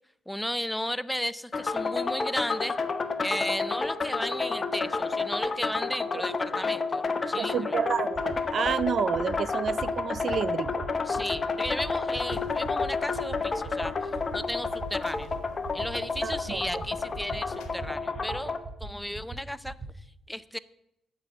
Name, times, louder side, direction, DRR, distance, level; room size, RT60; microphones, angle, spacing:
voice 1, 0.3-2.8 3.2-7.8 11.0-15.3 15.7-20.6, left 1 dB, 5° left, 16 dB, 0.5 m, -34 dB
sound 1, 1.5-18.6, left 4 dB, 35° left, 1.1 m, -30 dB
voice 2, 7.4-10.9 16.2-16.6, right 7 dB, 55° right, 19 dB, 0.4 m, -30 dB
sound 2, 7.8-7.9 8.1-8.4 8.6-8.9 9.1-9.4 9.6-9.9 10.1-10.4 10.6-10.9 11.1-11.4 11.6-11.9 12.1-12.4 12.6-12.9 13.1-13.4 13.6-13.9 14.1-14.4 14.6-14.9 15.1-15.4 15.6-15.9 16.1-16.4 16.6-16.9 17.1-17.4 17.6-17.9 18.1-18.4 18.6-18.9 19.1-19.4 19.6-19.9, right 4 dB, 20° right, 3.7 m, -40 dB
sound 3, 12.3-17.7, left 6 dB, 80° left, 1.6 m, -48 dB
9.2 x 7.4 x 9.0 m, 0.81 s
cardioid pair, 90°, 0 cm